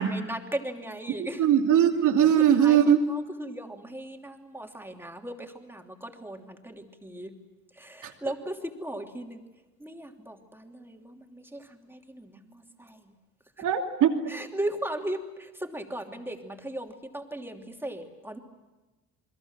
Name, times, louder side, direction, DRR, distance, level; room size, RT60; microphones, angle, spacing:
voice 1, 0.0-1.4 2.3-7.4 7.7-9.4 9.8-13.0 13.6-13.7 14.3-18.4, right 1 dB, 5° right, 3 dB, 3.1 m, -37 dB
voice 2, 1.4-3.1 8.0-8.1 13.6-14.1, right 9 dB, 80° right, 4 dB, 2.8 m, -20 dB
29.0 x 21.5 x 7.4 m, 1.1 s
cardioid pair, 90°, 30 cm